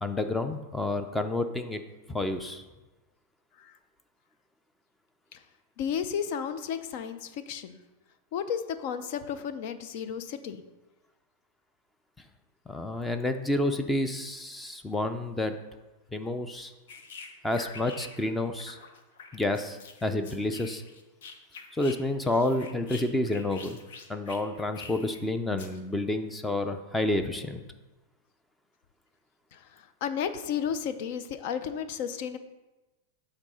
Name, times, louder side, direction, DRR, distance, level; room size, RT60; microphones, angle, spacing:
voice 1, 0.0-1.8 2.1-2.6 12.7-15.5 16.1-16.7 17.4-18.8 19.3-20.8 21.8-23.8 24.1-27.6, left 2 dB, 5° left, 8 dB, 0.5 m, -29 dB
voice 2, 5.8-7.8 8.3-10.6 29.5-29.6 30.0-32.4, left 8 dB, 55° left, 11 dB, 0.6 m, -33 dB
sound 1, 16.9-18.3 18.6-22.0 22.2-25.2 25.6-25.8, left 5 dB, 75° left, 1.0 m, -46 dB
7.4 x 3.7 x 6.2 m, 1.1 s
supercardioid pair, 140°, 0 cm